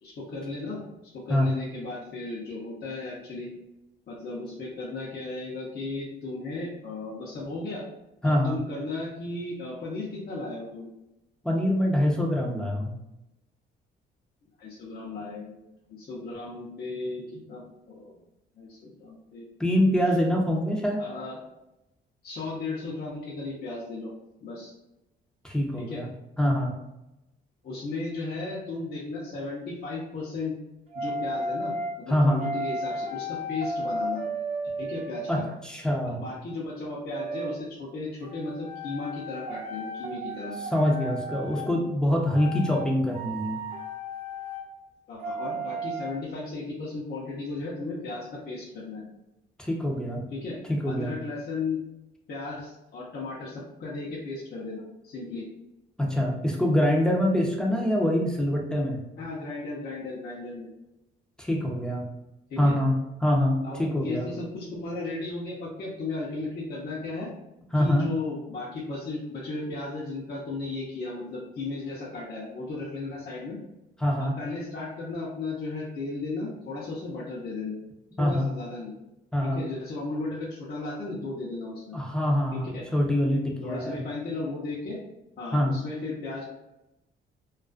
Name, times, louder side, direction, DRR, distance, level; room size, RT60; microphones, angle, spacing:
voice 1, 0.0-3.5 4.1-7.8 8.2-10.9 14.6-15.6 15.9-18.2 18.6-19.5 21.0-21.4 22.2-24.1 24.4-24.7 25.8-26.0 27.6-30.5 30.9-34.2 34.8-35.4 36.0-40.5 45.1-49.0 50.3-50.6 50.9-51.8 52.3-55.5 59.2-60.7 62.5-62.7 63.6-67.3 67.7-73.6 74.2-77.8 78.2-78.9 79.4-82.0 82.5-82.8 83.6-85.0 85.4-86.4, left 3 dB, 55° left, -7 dB, 0.7 m, -35 dB
voice 2, 8.2-8.6 11.4-12.9 19.6-21.0 25.4-26.1 26.4-26.7 32.1-32.4 35.3-36.2 40.7-43.6 49.6-50.3 50.7-51.1 56.0-59.0 61.4-62.1 62.6-62.9 63.2-64.3 67.7-68.1 74.0-74.3 78.2-78.5 79.3-79.6 81.9-84.0 85.5-85.7, left 1 dB, 5° left, -1 dB, 0.6 m, -25 dB
sound 1, 30.9-32.0 32.4-35.4 37.1-37.6 38.3-41.7 42.3-42.9 43.1-44.6 45.2-46.1, right 1 dB, 30° right, 0.7 m, -34 dB
2.3 x 2.3 x 2.4 m, 0.91 s
cardioid pair, 90°, 20 cm